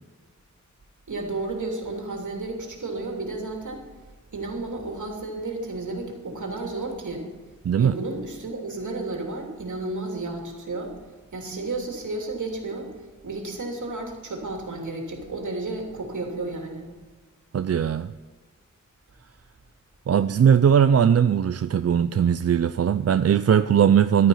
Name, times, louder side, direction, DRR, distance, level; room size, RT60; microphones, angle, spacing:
voice 1, 1.1-3.8 4.3-7.3 7.8-10.9 11.3-12.9 13.2-16.9, right 2 dB, 75° right, 1 dB, 3.1 m, -32 dB
voice 2, 7.6-8.0 17.5-18.1 20.1-24.3, right 8 dB, 55° right, 11 dB, 0.4 m, -19 dB
14.5 x 12.0 x 5.6 m, 1.3 s
wide cardioid pair, 100°, 30 cm